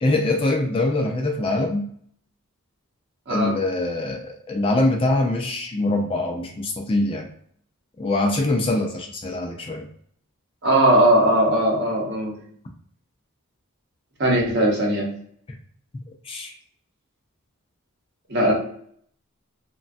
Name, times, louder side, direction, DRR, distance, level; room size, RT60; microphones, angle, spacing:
voice 1, 0.0-1.9 3.3-7.3 8.0-9.9 16.2-16.5, left 2 dB, 25° left, 2 dB, 0.3 m, -23 dB
voice 2, 10.6-12.3 14.2-15.0 18.3-18.5, right 1 dB, 50° right, -2 dB, 0.9 m, -19 dB
3.0 x 2.2 x 2.5 m, 0.63 s
head